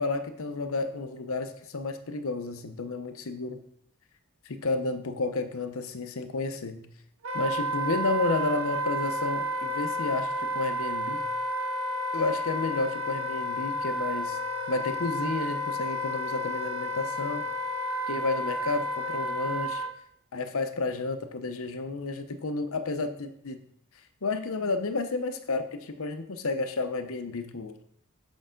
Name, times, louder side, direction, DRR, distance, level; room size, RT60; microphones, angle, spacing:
voice 1, 0.0-3.6 4.4-6.9 7.3-11.2 12.1-14.4 14.7-17.5 18.1-19.8 20.3-23.6 24.2-27.8, left 3 dB, 65° left, 8 dB, 0.7 m, -31 dB
Wind instrument woodwind instrument, 7.2-19.9, equal, 65° right, 0.8 m, -31 dB
8.0 x 5.4 x 3.8 m, 0.69 s
head